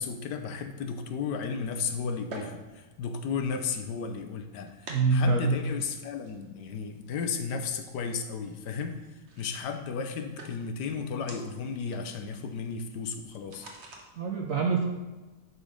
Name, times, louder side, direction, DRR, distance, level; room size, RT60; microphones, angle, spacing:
voice 1, 0.0-13.7, left 5 dB, 75° left, 6 dB, 1.3 m, -34 dB
sound 1, 1.6-14.0, right 2 dB, 45° right, 1.3 m, -50 dB
voice 2, 4.9-5.6 14.2-14.8, right 4 dB, 60° right, 1 dB, 1.0 m, -25 dB
11.0 x 4.2 x 5.0 m, 1.2 s
omnidirectional pair, 1.8 m